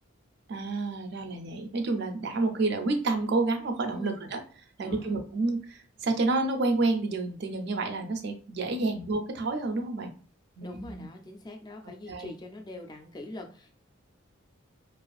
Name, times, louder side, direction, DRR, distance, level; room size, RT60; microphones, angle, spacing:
voice 1, 0.5-4.4 4.8-10.1 10.6-11.1 12.1-12.3, right 3 dB, 55° right, 6 dB, 0.4 m, -29 dB
voice 2, 4.8-5.1 8.8-9.0 10.6-13.7, left 1 dB, 20° left, 3 dB, 0.3 m, -43 dB
2.4 x 2.4 x 2.3 m, 0.39 s
head